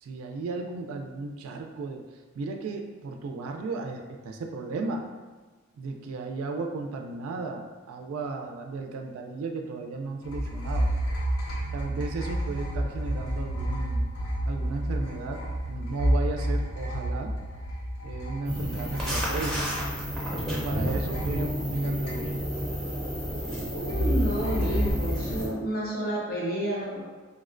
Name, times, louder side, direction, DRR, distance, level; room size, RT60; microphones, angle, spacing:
voice 1, 0.0-5.0 5.8-10.9 11.7-14.0 14.4-17.3 18.0-19.6 20.6-22.4, right 3 dB, 75° right, 4 dB, 0.3 m, -35 dB
sound 1, 10.2-20.5 20.8-22.7 23.9-24.9, right 1 dB, 90° left, 0.6 m, -30 dB
sound 2, 18.4-25.5, equal, 5° left, 0.6 m, -31 dB
voice 2, 23.7-27.0, right 1 dB, 45° left, -4 dB, 0.6 m, -30 dB
3.7 x 2.1 x 2.4 m, 1.3 s
head